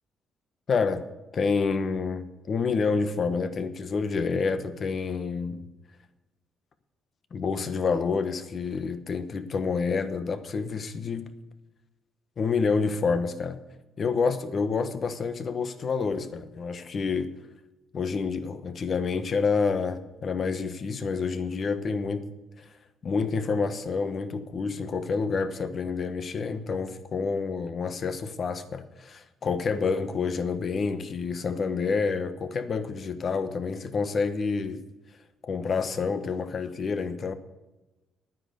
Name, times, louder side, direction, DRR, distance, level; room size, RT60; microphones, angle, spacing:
voice 1, 0.7-1.0 1.3-5.6 7.3-11.3 12.4-13.6 14.0-17.3 17.9-22.3 22.6-22.7 23.0-34.8 35.4-37.3, left 5 dB, 40° left, 10 dB, 1.1 m, -28 dB
10.5 x 9.7 x 6.7 m, 1.1 s
cardioid pair, 120°, 0 cm